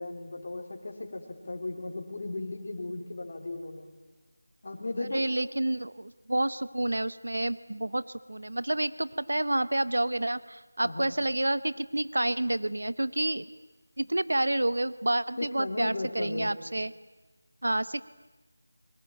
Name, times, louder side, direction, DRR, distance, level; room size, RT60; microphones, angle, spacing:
voice 1, 0.0-3.9 4.6-5.3 10.8-11.1 15.4-16.6, left 2 dB, 40° left, 3 dB, 4.0 m, -36 dB
voice 2, 5.1-13.5 14.0-16.9 17.6-18.0, right 1 dB, 80° right, 16 dB, 0.9 m, -29 dB
26.5 x 23.5 x 9.0 m, 1.2 s
figure-of-eight pair, 175°, 0 cm